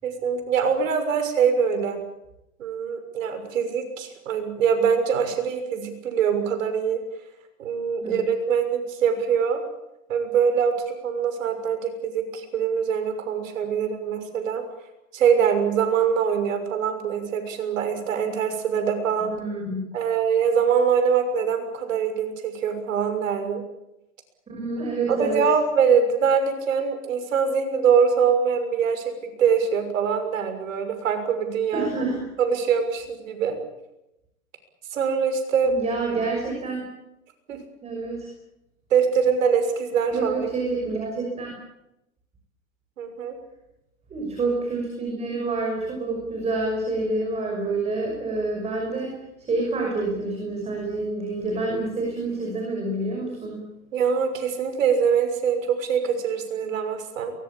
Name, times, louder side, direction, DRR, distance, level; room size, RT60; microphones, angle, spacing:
voice 1, 0.0-2.0 2.6-7.0 7.6-9.6 10.1-14.6 15.1-19.3 19.9-23.6 25.1-29.1 29.4-31.9 32.4-33.6 34.9-35.7 37.5-37.6 38.9-40.5 43.0-43.4 53.9-57.3, right 7 dB, 70° right, 7 dB, 6.4 m, -23 dB
voice 2, 19.2-19.9 24.5-25.4 31.7-32.2 35.6-36.8 37.8-38.3 40.1-41.6 44.1-49.2 49.5-53.7, right 3 dB, 15° right, 0 dB, 6.0 m, -28 dB
23.5 x 21.5 x 8.7 m, 0.89 s
hypercardioid pair, 140°, 41 cm